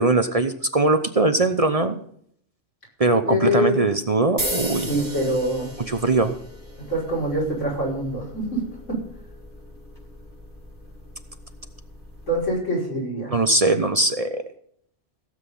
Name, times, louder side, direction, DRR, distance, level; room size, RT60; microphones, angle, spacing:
voice 1, 0.0-2.0 3.0-4.9 5.9-6.4 13.3-14.4, right 2 dB, 35° right, 9 dB, 0.8 m, -21 dB
voice 2, 3.3-3.8 4.9-5.7 6.9-8.6 8.9-9.0 12.3-13.3, equal, 85° left, -3 dB, 6.0 m, -24 dB
sound 1, 4.4-12.5, equal, 15° right, 5.2 m, -36 dB
16.5 x 8.1 x 5.5 m, 0.65 s
omnidirectional pair, 1.2 m